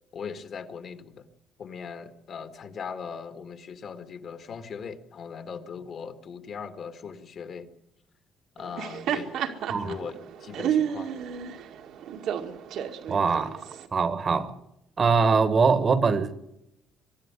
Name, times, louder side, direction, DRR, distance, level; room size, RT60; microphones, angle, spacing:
voice 1, 0.1-1.3 1.6-7.7 8.6-9.3 9.8-11.2, left 6 dB, 45° left, 1.7 m, -39 dB
Laughter, 8.6-13.9, right 9 dB, 75° right, 2.1 m, -31 dB
voice 2, 13.1-13.6 13.9-14.6 15.0-16.3, right 5 dB, 35° right, 1.4 m, -22 dB
23.5 x 12.0 x 9.7 m
cardioid pair, 140°, 0 cm